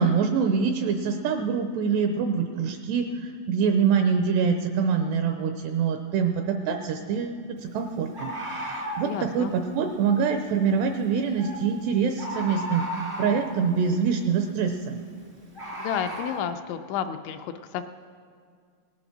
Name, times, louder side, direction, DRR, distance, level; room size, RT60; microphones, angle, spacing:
voice 1, 0.0-15.0, right 6 dB, 85° right, 5 dB, 2.5 m, -25 dB
Bird, 6.4-6.5 8.1-9.1 11.4-11.6 12.2-13.5 15.5-16.4, equal, 55° right, 0.7 m, -34 dB
voice 2, 9.0-9.5 15.8-17.8, left 8 dB, 80° left, 7 dB, 2.8 m, -31 dB
18.5 x 11.0 x 6.0 m, 2.2 s
omnidirectional pair, 5.5 m